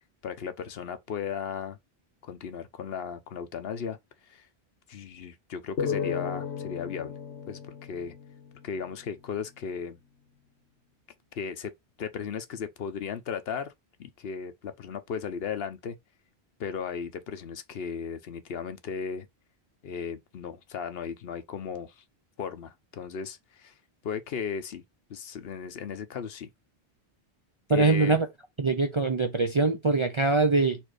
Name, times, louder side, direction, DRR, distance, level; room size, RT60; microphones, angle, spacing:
voice 1, 0.2-1.8 2.2-4.0 4.2-4.5 4.9-7.2 7.5-8.1 8.6-10.0 11.4-11.7 12.0-13.7 14.0-16.0 16.6-19.3 19.8-22.0 22.4-23.7 24.0-24.8 25.1-26.5 27.7-28.2, left 6 dB, 65° left, 0.9 m, -36 dB
sound 1, 5.8-9.2, left 7 dB, 85° left, 1.4 m, -34 dB
voice 2, 27.7-28.3 28.6-30.8, right 3 dB, 40° right, 0.4 m, -23 dB
4.4 x 2.6 x 4.6 m
omnidirectional pair, 1.1 m